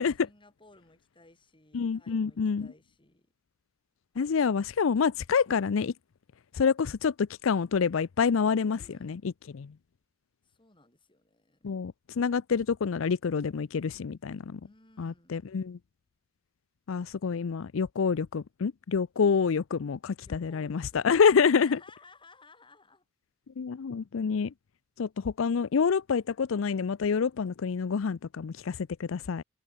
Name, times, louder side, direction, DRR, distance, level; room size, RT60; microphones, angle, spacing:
voice 1, 0.2-3.3 8.7-9.2 10.4-11.7 14.6-15.4 20.2-21.1 21.4-23.0, left 2 dB, 25° left, 7.9 m, -58 dB
voice 2, 1.7-2.7 4.2-5.9 6.5-9.2 9.5-9.7 11.6-14.6 15.0-15.8 16.9-21.8 23.6-24.5 25.0-29.4, left 6 dB, 75° left, 0.5 m, -27 dB
head